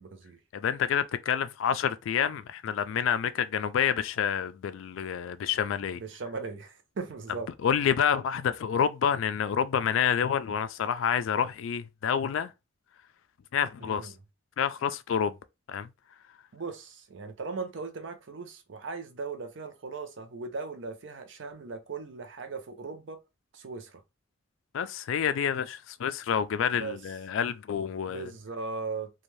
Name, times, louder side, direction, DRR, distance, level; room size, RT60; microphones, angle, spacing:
voice 1, 0.0-0.4 5.9-7.5 13.8-14.2 16.5-23.2 23.5-24.0 26.7-27.0 28.1-29.1, right 4 dB, 60° right, 0.5 m, -38 dB
voice 2, 0.5-6.0 7.6-12.5 13.5-14.1 14.6-15.4 15.7-15.9 24.7-28.3, left 8 dB, 70° left, 0.3 m, -28 dB
2.6 x 2.2 x 3.1 m
head